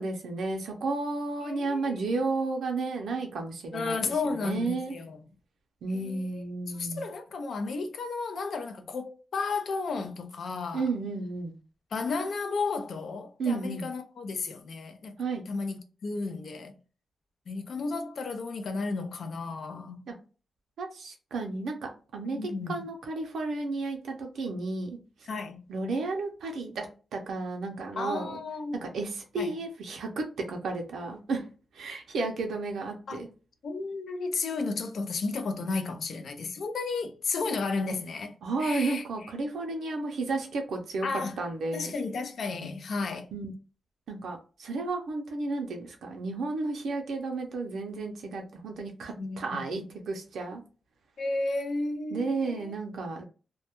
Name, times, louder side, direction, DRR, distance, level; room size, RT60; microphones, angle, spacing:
voice 1, 0.0-4.9 5.8-7.0 10.7-11.6 13.4-13.9 15.2-15.5 20.1-20.2 20.8-25.0 25.7-26.9 27.1-28.4 28.8-31.5 31.7-33.3 38.4-41.1 41.4-41.9 43.3-43.5 44.1-50.6 52.1-53.2, right 3 dB, 80° right, 0.5 m, -32 dB
voice 2, 1.4-2.2 3.7-5.2 5.9-10.9 11.9-15.2 15.5-16.8 17.5-20.0 22.2-22.8 25.3-25.6 28.0-28.9 29.4-29.5 33.1-33.2 33.6-39.0 41.0-41.4 41.7-43.3 49.2-49.9 51.2-52.8, left 4 dB, 55° left, 0.4 m, -33 dB
2.2 x 2.1 x 2.8 m
wide cardioid pair, 170°, 0 cm